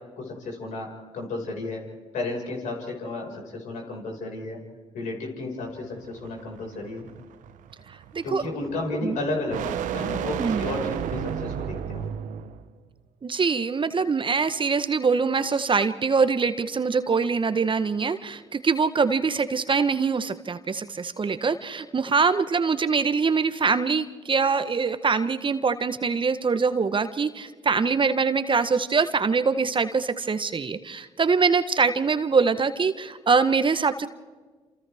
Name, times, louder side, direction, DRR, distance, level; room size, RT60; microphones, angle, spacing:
voice 1, 0.2-0.9 1.1-1.8 2.1-4.6 4.9-7.1 8.2-12.1, left 2 dB, 70° left, 0 dB, 5.3 m, -32 dB
sound 1, 5.6-12.7, right 9 dB, 70° right, 1.0 m, -33 dB
voice 2, 7.9-8.4 9.0-9.2 10.4-10.7 13.2-34.1, right 5 dB, 40° right, 11 dB, 1.1 m, -24 dB
28.0 x 28.0 x 3.5 m, 1.4 s
hypercardioid pair, 45°, 14 cm